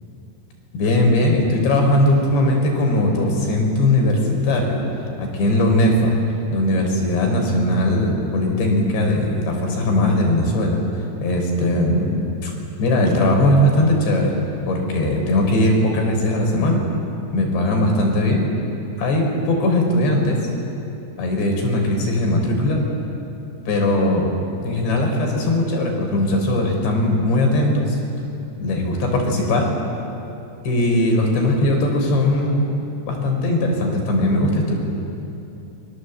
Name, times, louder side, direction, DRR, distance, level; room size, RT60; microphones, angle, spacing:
voice 1, 0.7-4.8 5.2-6.1 6.5-10.8 11.2-12.1 12.4-12.5 12.8-14.3 14.7-16.8 17.3-18.5 19.0-20.4 21.2-22.8 23.7-28.0 28.6-29.7 30.6-32.6 33.0-34.7, left 1 dB, 80° left, 1 dB, 6.3 m, -19 dB
28.5 x 23.5 x 8.0 m, 2.8 s
omnidirectional pair, 5.0 m